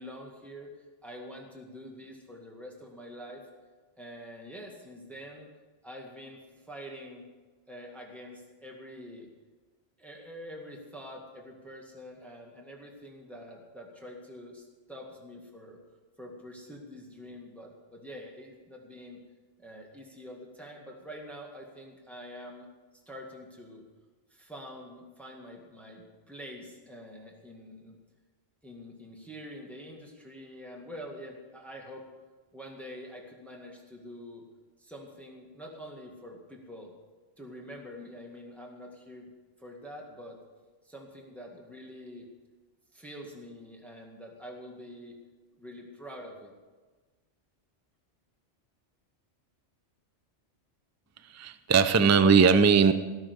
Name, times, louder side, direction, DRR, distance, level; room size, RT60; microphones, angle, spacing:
voice 1, 0.0-3.4 4.0-5.5 5.8-7.3 7.7-9.3 10.0-15.8 16.2-19.2 19.6-22.7 22.9-23.8 24.3-28.0 28.6-32.0 32.5-34.4 34.8-36.9 37.4-39.3 39.6-40.4 40.8-42.3 42.9-45.2 45.6-46.5, equal, ahead, 0 dB, 1.9 m, -46 dB
voice 2, 51.3-52.9, right 5 dB, 25° right, 11 dB, 0.4 m, -20 dB
18.0 x 6.4 x 8.1 m, 1.3 s
omnidirectional pair, 1.2 m